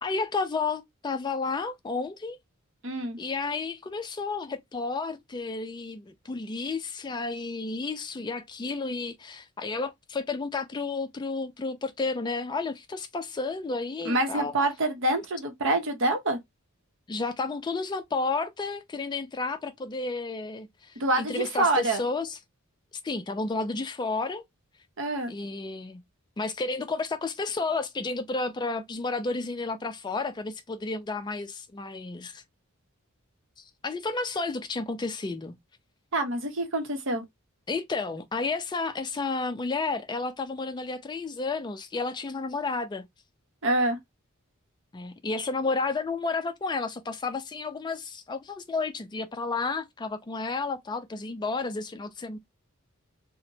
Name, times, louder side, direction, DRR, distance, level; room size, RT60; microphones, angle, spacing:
voice 1, 0.0-2.4 3.2-14.5 17.1-22.4 23.0-24.4 25.3-26.0 26.4-32.4 33.6-35.5 37.7-43.1 44.9-52.4, left 3 dB, 20° left, 0.3 m, -31 dB
voice 2, 2.8-3.2 14.0-16.4 21.0-22.0 25.0-25.3 36.1-37.2 43.6-44.0, right 2 dB, 60° right, 0.7 m, -26 dB
2.8 x 2.1 x 2.6 m
head